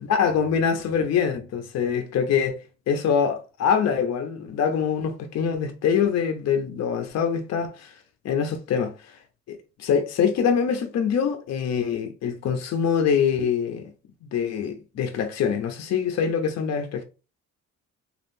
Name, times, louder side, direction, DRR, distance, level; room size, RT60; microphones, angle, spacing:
voice 1, 0.0-2.6 2.9-8.0 8.2-9.2 9.5-13.9 14.2-17.0, left 7 dB, 60° left, 0.6 m, -24 dB
3.4 x 2.4 x 2.6 m
cardioid pair, 90°, 30 cm